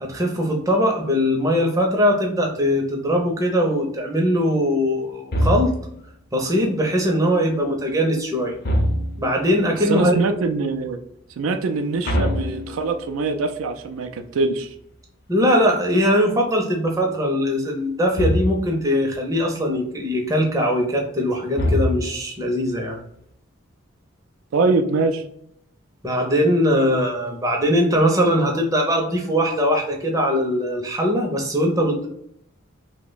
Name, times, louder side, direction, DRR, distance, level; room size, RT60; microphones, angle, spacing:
voice 1, 0.0-5.7 6.3-8.6 9.2-10.2 15.3-23.0 26.0-32.1, equal, 15° right, 1 dB, 0.5 m, -21 dB
sound 1, 5.3-6.1 8.6-9.4 12.0-13.2 18.2-18.8 21.5-22.4, left 1 dB, 50° left, 0.6 m, -23 dB
voice 2, 9.9-11.0 11.4-14.7 24.5-25.2, right 3 dB, 85° right, 7 dB, 0.4 m, -23 dB
2.8 x 2.1 x 3.8 m, 0.71 s
head